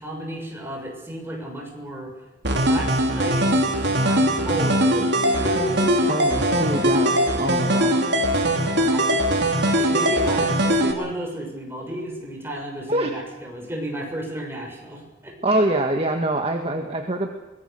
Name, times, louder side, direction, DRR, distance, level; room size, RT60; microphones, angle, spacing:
voice 1, 0.0-2.1 2.4-3.5 3.9-6.2 7.7-8.0 8.7-9.1 9.7-15.3, equal, 15° right, 0 dB, 6.6 m, -32 dB
sound 1, 2.4-10.9, right 1 dB, 65° right, 3.1 m, -21 dB
voice 2, 6.1-8.1 12.9-13.2 15.4-17.3, right 1 dB, 30° right, 3 dB, 1.9 m, -24 dB
24.0 x 22.0 x 6.8 m, 1.1 s
head